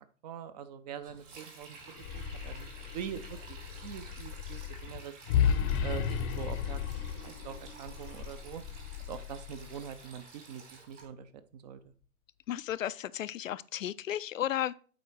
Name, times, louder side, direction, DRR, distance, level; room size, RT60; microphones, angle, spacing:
voice 1, 0.2-1.8 2.1-5.2 5.8-8.6 9.1-11.9, right 8 dB, 30° right, 0.5 m, -44 dB
Sink (filling or washing), 1.0-11.1, right 4 dB, 60° right, 4.2 m, -52 dB
sound 1, 1.9-10.0, left 8 dB, 25° left, 0.7 m, -34 dB
voice 2, 12.5-14.7, left 11 dB, 65° left, 0.5 m, -34 dB
7.8 x 4.8 x 4.6 m
figure-of-eight pair, 110°, 42 cm